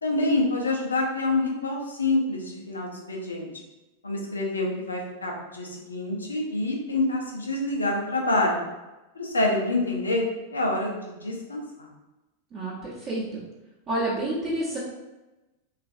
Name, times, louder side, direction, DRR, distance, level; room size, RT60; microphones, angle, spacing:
voice 1, 0.0-3.5 4.0-8.6 9.1-11.9, left 2 dB, 75° left, 0 dB, 0.5 m, -27 dB
voice 2, 12.5-13.4 13.9-14.8, right 1 dB, 30° right, -7 dB, 0.7 m, -29 dB
3.0 x 2.4 x 2.5 m, 1.0 s
figure-of-eight pair, 90°, 0 cm